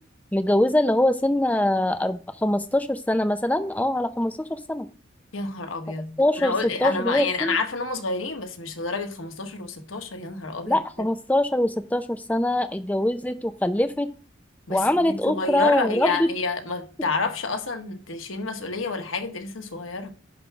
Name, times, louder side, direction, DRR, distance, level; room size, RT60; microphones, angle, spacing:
voice 1, 0.3-4.9 6.2-6.5 6.8-7.6 10.7-14.1 14.7-16.3, left 1 dB, 10° left, 0.6 m, -23 dB
voice 2, 5.3-10.8 14.7-20.1, left 3 dB, 80° left, 1.5 m, -29 dB
10.0 x 3.6 x 6.0 m
head